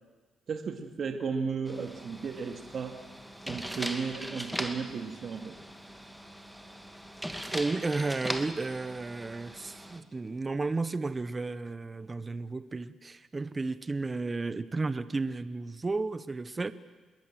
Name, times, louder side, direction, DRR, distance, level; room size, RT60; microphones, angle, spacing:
voice 1, 0.5-3.0 3.5-5.6, right 5 dB, 50° right, 6 dB, 2.2 m, -34 dB
sound 1, 1.7-10.0, equal, ahead, 2.1 m, -40 dB
voice 2, 7.5-16.7, right 3 dB, 25° right, 14 dB, 1.0 m, -33 dB
26.5 x 21.0 x 7.6 m, 1.4 s
cardioid pair, 90°, 0 cm